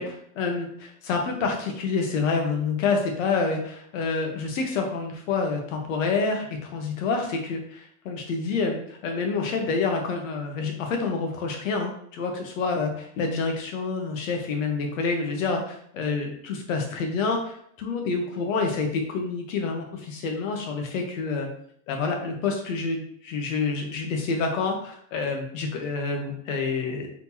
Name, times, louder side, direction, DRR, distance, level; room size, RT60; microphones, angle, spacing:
voice 1, 0.0-6.5 6.7-17.5 17.8-21.5 21.9-27.1, left 4 dB, 60° left, 3 dB, 1.3 m, -28 dB
4.3 x 3.9 x 2.8 m, 0.66 s
supercardioid pair, 150°, 44 cm